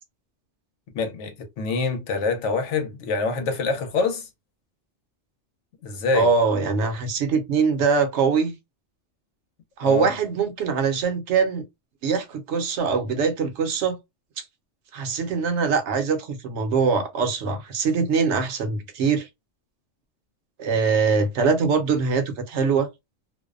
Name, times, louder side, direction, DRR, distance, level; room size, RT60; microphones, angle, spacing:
voice 1, 0.9-4.3 5.8-6.3 9.8-10.1, left 4 dB, 85° left, 1.0 m, -25 dB
voice 2, 6.1-8.6 9.8-11.6 12.0-14.0 14.4-14.5 14.9-19.3 20.6-22.9, right 5 dB, 75° right, 0.9 m, -23 dB
2.5 x 2.1 x 2.3 m
omnidirectional pair, 1.2 m